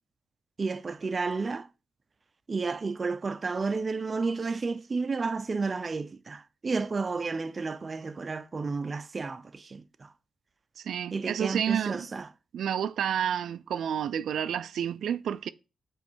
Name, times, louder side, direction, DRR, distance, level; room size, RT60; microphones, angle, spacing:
voice 1, 0.6-1.7 2.5-10.1 11.1-12.3, right 4 dB, 30° right, 0.4 m, -31 dB
voice 2, 10.8-12.1 12.5-15.5, right 9 dB, 90° right, 0.3 m, -30 dB
7.1 x 3.2 x 6.0 m
wide cardioid pair, 155°, 0 cm